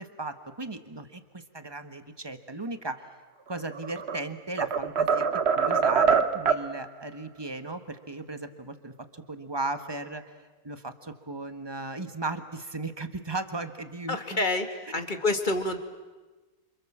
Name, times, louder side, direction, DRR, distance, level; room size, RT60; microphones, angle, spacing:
voice 1, 0.0-3.0 3.5-10.2 10.6-14.4, right 2 dB, 15° right, 8 dB, 1.3 m, -36 dB
sound 1, 3.7-4.2 4.6-6.7, right 6 dB, 45° right, 1.0 m, -24 dB
voice 2, 14.1-15.8, left 2 dB, 25° left, 7 dB, 1.9 m, -28 dB
29.0 x 26.5 x 7.4 m, 1.2 s
omnidirectional pair, 2.1 m